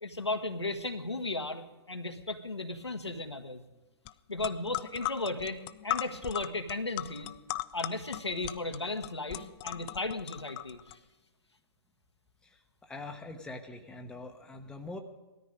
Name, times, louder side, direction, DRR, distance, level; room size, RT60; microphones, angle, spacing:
voice 1, 0.0-3.6 4.3-7.3 7.7-11.0, left 2 dB, 90° left, 5 dB, 1.4 m, -35 dB
sound 1, 4.1-4.2 4.4-10.9, left 19 dB, 25° left, 0.4 m, -38 dB
voice 2, 12.8-15.0, left 2 dB, 5° left, 4 dB, 1.0 m, -43 dB
18.5 x 13.5 x 5.1 m, 1.1 s
figure-of-eight pair, 125°, 14 cm